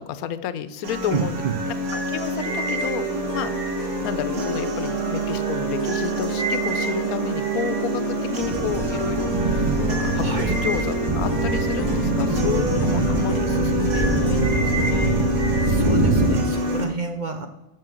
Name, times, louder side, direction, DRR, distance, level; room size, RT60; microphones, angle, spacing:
voice 1, 0.0-3.5 4.0-15.3, left 9 dB, 85° left, 13 dB, 1.1 m, -31 dB
sound 1, 0.8-16.9, right 1 dB, 80° right, 1.8 m, -27 dB
voice 2, 1.1-1.5 10.2-10.5 15.6-17.5, right 5 dB, 55° right, 6 dB, 0.5 m, -29 dB
sound 2, 2.4-16.8, right 1 dB, 50° left, 0.5 m, -31 dB
sound 3, 8.4-16.3, right 2 dB, 25° right, 0.9 m, -24 dB
7.6 x 6.2 x 6.2 m, 0.99 s
omnidirectional pair, 1.5 m